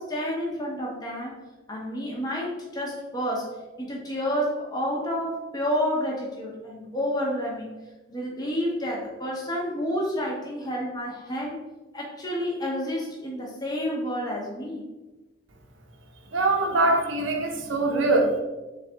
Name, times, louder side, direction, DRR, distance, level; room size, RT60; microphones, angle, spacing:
voice 1, 0.0-1.4 1.7-11.6 11.9-14.8 16.7-16.8, equal, 20° left, -4 dB, 0.7 m, -30 dB
voice 2, 16.3-18.4, right 2 dB, 85° right, 2 dB, 0.6 m, -23 dB
3.8 x 3.3 x 3.3 m, 1.1 s
head